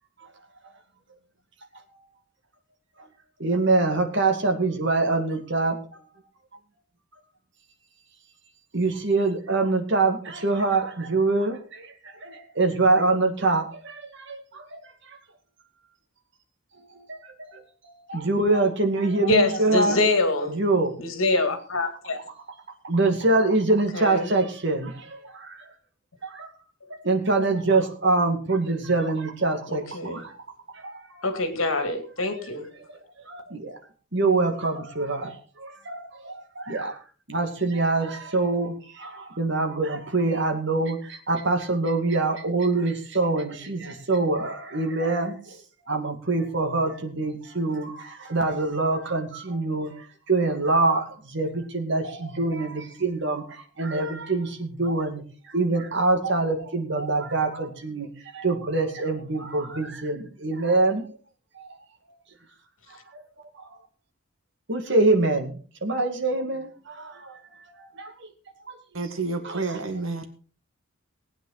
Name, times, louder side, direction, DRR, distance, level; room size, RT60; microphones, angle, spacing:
voice 1, 3.4-6.0 8.7-11.9 12.2-14.8 15.1-15.2 17.1-17.6 18.1-20.0 20.5-20.9 22.8-25.6 26.2-26.5 27.0-30.4 30.7-31.3 32.2-32.5 32.8-32.9 33.3-33.8 34.1-37.0 37.3-45.6 45.9-55.2 55.5-58.1 58.3-61.0 63.1-63.2 63.6-63.7 64.7-67.3 67.8-68.1 68.7-68.8 69.4-69.6, right 3 dB, 60° right, 2.4 m, -25 dB
voice 2, 19.3-20.6 21.0-22.2 23.9-24.3 29.7-30.2 31.2-32.7, left 2 dB, 75° left, 2.3 m, -25 dB
voice 3, 68.9-70.3, right 3 dB, 75° right, 1.9 m, -29 dB
19.0 x 9.1 x 4.1 m
head